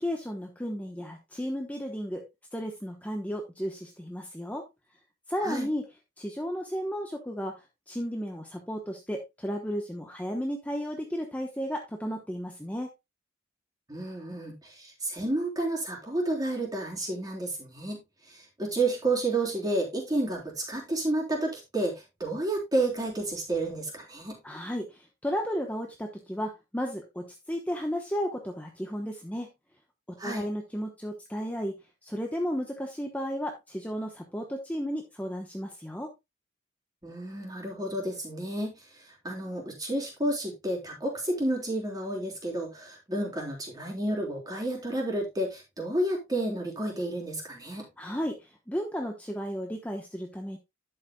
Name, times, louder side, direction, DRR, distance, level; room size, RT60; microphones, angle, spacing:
voice 1, 0.0-2.2 2.5-4.6 5.3-5.8 6.2-7.5 7.9-12.9 24.4-29.5 30.1-31.7 32.0-36.1 48.0-50.6, equal, 10° left, 1.0 m, -33 dB
voice 2, 13.9-24.4 30.2-30.5 37.0-38.8 39.2-47.9, right 2 dB, 20° right, 3.7 m, -31 dB
11.5 x 8.0 x 2.3 m
head